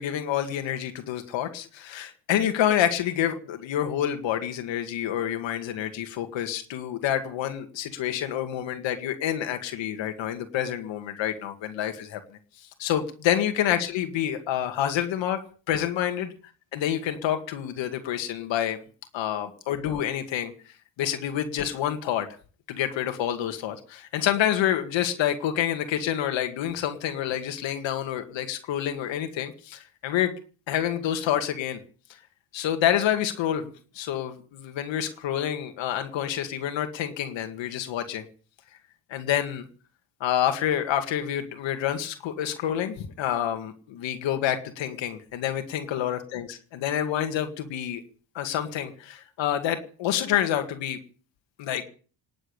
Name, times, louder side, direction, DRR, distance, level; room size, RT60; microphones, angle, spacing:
voice 1, 0.0-12.2 12.8-15.4 15.7-16.3 16.7-18.8 19.1-20.5 21.0-22.3 22.7-30.3 30.7-31.8 32.5-33.6 34.0-38.2 39.1-39.6 40.2-48.0 48.3-51.0 51.6-51.8, left 10 dB, 85° left, 7 dB, 2.2 m, -28 dB
19.0 x 7.8 x 8.7 m, 0.41 s
cardioid pair, 120°, 44 cm